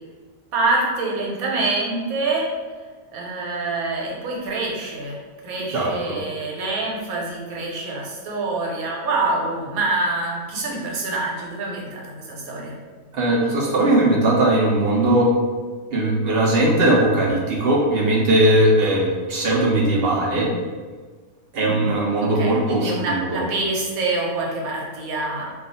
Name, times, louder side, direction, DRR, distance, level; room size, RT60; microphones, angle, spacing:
voice 1, 0.5-2.5 3.1-12.7 21.6-25.5, right 2 dB, 85° right, -2 dB, 1.2 m, -26 dB
voice 2, 5.7-6.2 13.1-15.3 15.9-20.5 21.5-23.4, right 1 dB, 65° right, -2 dB, 0.6 m, -19 dB
2.4 x 2.3 x 4.0 m, 1.5 s
omnidirectional pair, 1.5 m